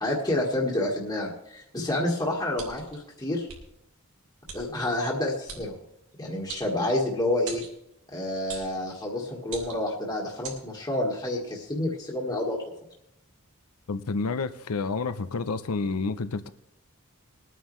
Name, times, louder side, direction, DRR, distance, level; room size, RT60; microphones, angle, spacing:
voice 1, 0.0-3.5 4.5-5.7 6.2-7.6 8.1-12.6, left 1 dB, 20° left, -3 dB, 1.5 m, -29 dB
sound 1, 2.5-3.0 3.5-3.6 4.5-4.6 5.5-5.6 6.5-7.1 7.5-7.7 8.5-8.7 9.4-9.9 10.4-10.6, right 5 dB, 80° right, 3.3 m, -40 dB
voice 2, 13.9-16.5, left 4 dB, 90° left, 12 dB, 0.6 m, -29 dB
21.5 x 9.2 x 3.2 m, 0.82 s
head